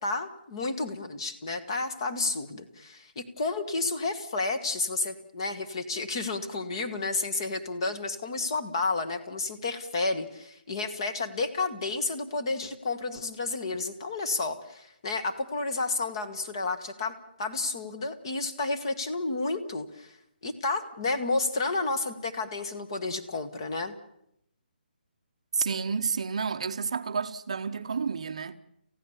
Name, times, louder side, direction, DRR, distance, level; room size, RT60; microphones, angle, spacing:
voice 1, 0.0-20.1 20.4-23.9, left 3 dB, 25° left, 1.4 m, -31 dB
voice 2, 25.5-28.6, right 5 dB, 35° right, 0.8 m, -30 dB
28.5 x 15.5 x 7.2 m
hypercardioid pair, 180°, 6 cm